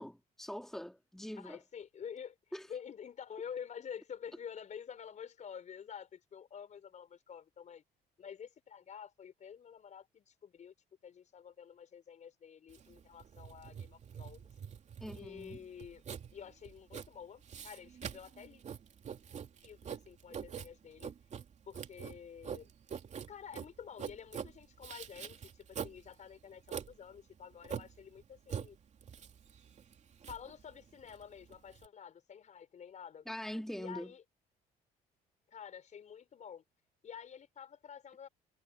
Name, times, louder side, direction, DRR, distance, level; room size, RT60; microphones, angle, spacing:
voice 1, 0.0-1.6 2.5-2.7 15.0-15.6 33.3-34.1, equal, ahead, 2.3 m, -43 dB
voice 2, 1.3-2.4 2.7-7.8 8.2-10.7 11.0-14.4 15.1-16.0 16.3-18.6 19.6-21.1 21.7-22.7 23.3-28.8 30.3-33.3 33.8-34.2 35.5-36.6 37.0-38.3, left 7 dB, 45° left, 5.7 m, -49 dB
Writing, 12.7-31.9, right 7 dB, 45° right, 3.0 m, -45 dB
cardioid pair, 110°, 17 cm